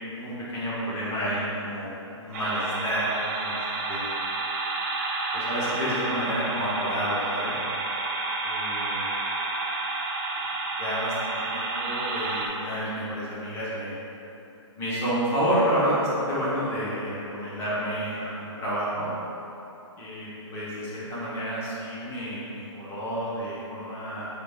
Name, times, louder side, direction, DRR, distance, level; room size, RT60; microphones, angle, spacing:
voice 1, 0.1-3.6 3.9-4.0 5.3-7.5 8.4-9.1 10.3-10.4 10.8-14.0 14.8-19.1 20.0-24.3, equal, 15° left, -9 dB, 1.0 m, -30 dB
sound 1, 2.3-12.5, right 3 dB, 30° right, 0.5 m, -30 dB
5.0 x 2.6 x 3.5 m, 3.0 s
hypercardioid pair, 155°, 16 cm